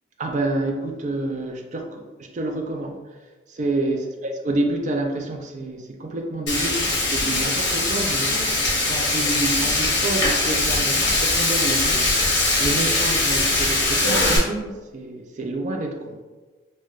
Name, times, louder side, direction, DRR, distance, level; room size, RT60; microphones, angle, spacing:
voice 1, 0.2-3.0 3.5-4.0 4.4-8.4 8.8-16.2, right 2 dB, 40° right, 3 dB, 0.3 m, -28 dB
Frying (food), 6.5-14.4, left 2 dB, 70° left, 1.1 m, -21 dB
3.1 x 2.7 x 2.4 m, 1.3 s
head